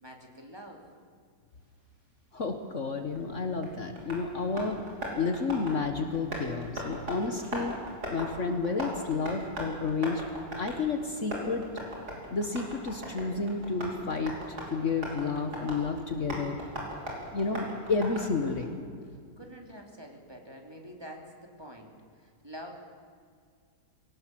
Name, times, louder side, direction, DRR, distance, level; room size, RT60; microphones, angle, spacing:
voice 1, 0.0-0.8 19.1-22.7, equal, 15° right, 1 dB, 2.8 m, -47 dB
voice 2, 2.3-4.8 5.2-7.8 8.1-10.2 10.6-11.7 12.3-14.4 14.7-16.6 17.3-18.8, left 4 dB, 50° left, 6 dB, 1.6 m, -31 dB
Tap, 3.1-18.6, equal, 80° right, 5.6 m, -40 dB
22.0 x 18.0 x 7.6 m, 2.2 s
omnidirectional pair, 1.7 m